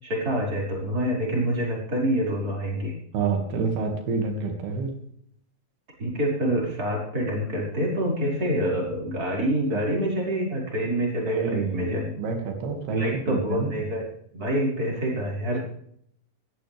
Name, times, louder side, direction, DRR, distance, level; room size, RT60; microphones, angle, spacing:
voice 1, 0.0-2.9 6.0-12.1 13.0-14.0 14.3-15.6, equal, 25° right, -3 dB, 5.8 m, -26 dB
voice 2, 3.1-4.9 9.7-9.8 11.3-13.9, right 4 dB, 85° right, 4 dB, 4.1 m, -28 dB
20.0 x 14.5 x 3.5 m, 0.67 s
omnidirectional pair, 4.4 m